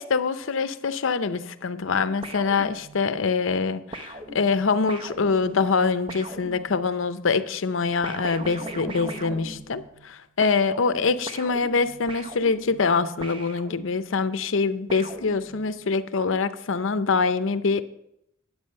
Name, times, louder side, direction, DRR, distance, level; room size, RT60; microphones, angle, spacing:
voice 1, 0.0-17.9, left 4 dB, 80° left, 12 dB, 0.6 m, -24 dB
sound 1, 2.2-3.2 3.9-7.1 8.0-10.1 10.4-14.2 14.9-15.9, right 1 dB, 25° right, 0.7 m, -40 dB
10.5 x 8.2 x 5.4 m, 0.80 s
head